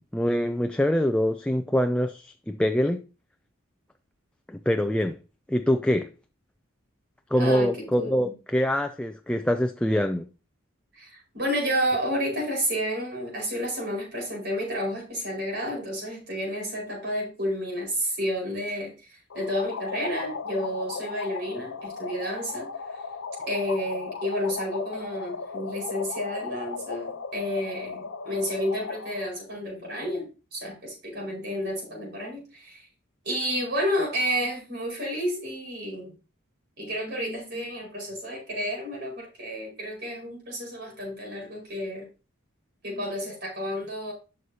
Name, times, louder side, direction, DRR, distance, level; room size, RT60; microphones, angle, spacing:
voice 1, 0.1-3.0 4.5-5.2 5.5-6.1 7.3-10.3, equal, 5° left, 0.4 m, -24 dB
voice 2, 7.4-8.3 10.9-23.0 23.5-32.9 33.2-36.1 36.8-42.1 42.8-44.1, equal, 50° right, 5.0 m, -31 dB
sound 1, 19.3-29.3, left 5 dB, 70° left, 0.7 m, -36 dB
11.0 x 6.4 x 2.8 m
head